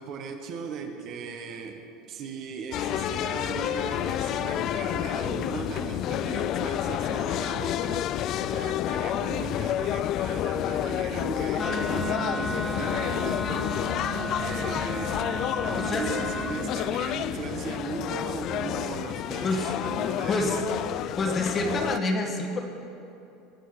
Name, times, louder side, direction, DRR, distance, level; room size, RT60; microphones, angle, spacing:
voice 1, 0.0-8.1 8.4-15.2 15.6-20.6, right 5 dB, 45° right, 5 dB, 1.1 m, -37 dB
sound 1, 2.7-22.0, left 12 dB, 45° left, 0.3 m, -29 dB
Wind instrument woodwind instrument, 11.6-16.7, right 2 dB, 5° left, 1.0 m, -34 dB
voice 2, 15.7-16.3 19.4-19.7 20.3-20.6 21.2-22.6, left 2 dB, 25° left, 4 dB, 1.5 m, -28 dB
19.5 x 6.9 x 6.4 m, 2.7 s
supercardioid pair, 145°, 0 cm